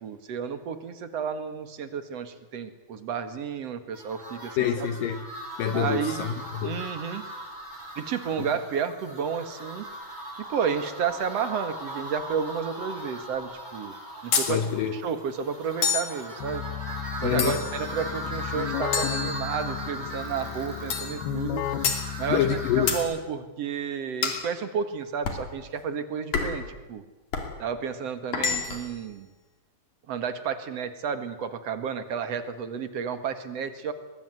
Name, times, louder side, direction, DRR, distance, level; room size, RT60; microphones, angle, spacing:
voice 1, 0.0-4.9 5.7-6.3 6.6-7.2 8.0-9.8 10.5-13.9 14.2-14.6 14.9-16.6 17.2-21.6 22.2-22.5 22.8-27.0 27.6-29.3 30.1-33.9, right 7 dB, 50° right, 10 dB, 2.3 m, -31 dB
sound 1, 3.9-23.0, right 1 dB, 10° right, 7.2 m, -39 dB
voice 2, 4.6-5.2 5.6-6.8 14.5-15.0 17.2-17.6 22.3-23.0, left 9 dB, 70° left, 10 dB, 2.6 m, -26 dB
sound 2, 14.3-14.6 15.8-16.2 17.4-17.8 18.9-19.8 20.9-21.2 21.8-22.1 22.9-23.1 24.2-24.5 25.3-25.5 26.3-26.7 27.3-27.5 28.3-28.9, left 6 dB, 55° left, 4.0 m, -28 dB
Keyboard (musical), 16.4-23.3, left 10 dB, 90° left, 3.0 m, -34 dB
23.5 x 21.5 x 9.4 m, 1.1 s
omnidirectional pair, 4.3 m